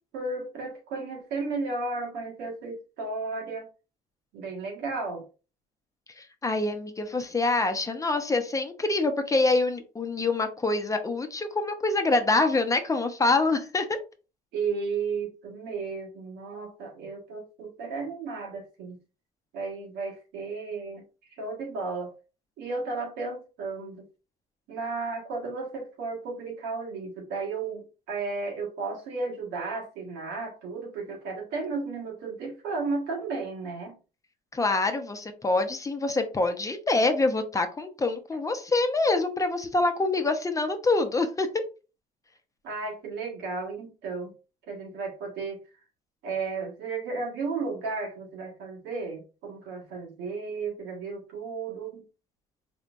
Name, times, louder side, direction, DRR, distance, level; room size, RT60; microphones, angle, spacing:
voice 1, 0.1-3.7 4.3-5.2 14.5-19.0 19.5-21.0 21.3-22.1 22.6-24.1 24.7-34.0 42.6-44.3 44.7-45.6 46.2-52.0, right 4 dB, 90° right, 1.6 m, -34 dB
voice 2, 6.2-14.0 34.5-41.6, left 3 dB, 20° left, 0.7 m, -25 dB
4.2 x 3.3 x 2.5 m
cardioid pair, 110°, 17 cm